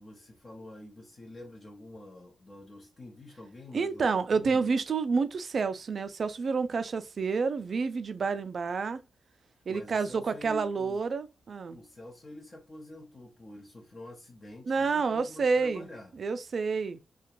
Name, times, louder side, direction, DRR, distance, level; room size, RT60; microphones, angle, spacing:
voice 1, 0.0-4.7 9.7-11.0 11.7-16.1, left 1 dB, 35° left, 0.7 m, -47 dB
voice 2, 3.7-9.0 9.7-11.8 14.7-15.9 16.2-17.0, right 4 dB, 55° right, 0.3 m, -29 dB
2.4 x 2.2 x 2.9 m
cardioid pair, 90°, 0 cm